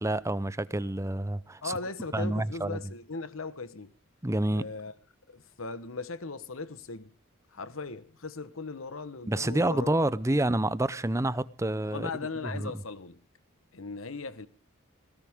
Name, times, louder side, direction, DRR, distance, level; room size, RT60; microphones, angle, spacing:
voice 1, 0.0-1.7 2.1-2.8 4.2-4.7 9.3-12.1 12.4-12.7, right 1 dB, 15° right, 0.7 m, -28 dB
voice 2, 1.6-3.9 4.5-4.9 5.3-7.1 7.5-10.4 11.8-13.2 13.7-14.5, left 3 dB, 75° left, 1.2 m, -38 dB
19.5 x 17.5 x 3.6 m
head